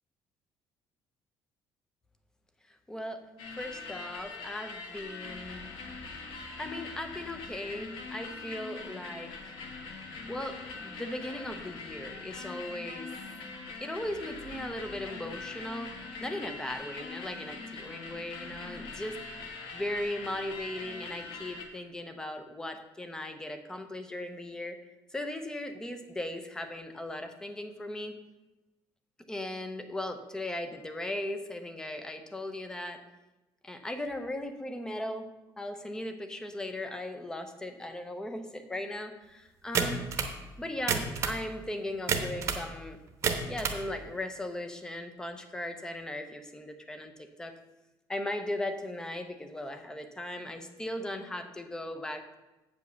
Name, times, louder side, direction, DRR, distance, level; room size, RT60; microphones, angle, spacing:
voice 1, 2.9-3.2 3.6-5.6 6.6-9.3 10.3-13.1 13.8-19.2 19.7-24.8 25.1-28.2 29.3-33.0 33.6-35.3 35.6-40.1 40.6-43.0 43.5-47.5 48.1-52.3, left 1 dB, 10° left, 8 dB, 0.6 m, -38 dB
sound 1, 3.4-21.7, left 3 dB, 75° left, 1.4 m, -43 dB
sound 2, 39.7-40.4 40.8-41.4 42.1-42.6 43.1-43.8, right 6 dB, 35° right, 0.9 m, -29 dB
8.0 x 5.3 x 6.6 m, 1.1 s
cardioid pair, 180°, 9 cm